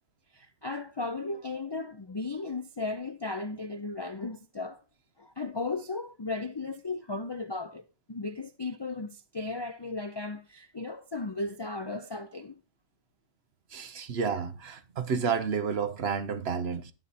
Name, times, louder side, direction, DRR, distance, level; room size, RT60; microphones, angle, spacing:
voice 1, 0.3-4.8 5.2-12.6, left 3 dB, 45° left, 0.3 m, -35 dB
voice 2, 13.7-16.9, right 6 dB, 55° right, 1.1 m, -30 dB
11.5 x 8.7 x 4.2 m
omnidirectional pair, 1.3 m